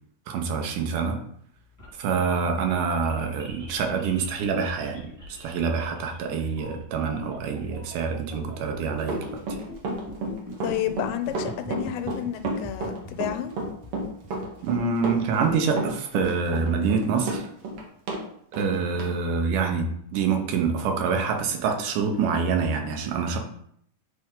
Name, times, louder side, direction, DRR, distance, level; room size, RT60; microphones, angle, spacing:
voice 1, 0.3-1.2 2.0-9.6 14.6-17.5 18.6-23.4, right 5 dB, 75° right, 3 dB, 2.3 m, -26 dB
sound 1, 1.5-15.6, equal, 10° right, 1.1 m, -43 dB
Run, 9.0-18.2 18.5-18.7 19.0-19.1, right 2 dB, 60° right, 1.6 m, -31 dB
voice 2, 10.6-13.5, left 12 dB, 85° left, 8 dB, 2.3 m, -30 dB
8.8 x 3.3 x 3.7 m, 0.66 s
omnidirectional pair, 3.9 m